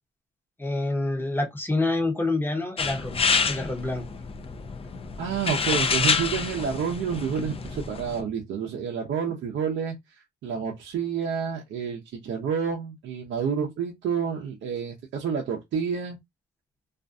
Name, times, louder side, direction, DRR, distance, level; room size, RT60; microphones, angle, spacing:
voice 1, 0.6-4.0, left 2 dB, 10° left, 0.8 m, -27 dB
sound 1, 2.8-8.2, left 5 dB, 30° left, 0.4 m, -28 dB
voice 2, 5.2-9.9 10.4-16.2, right 6 dB, 65° right, 0.6 m, -29 dB
2.5 x 2.3 x 2.5 m
cardioid pair, 90°, 20 cm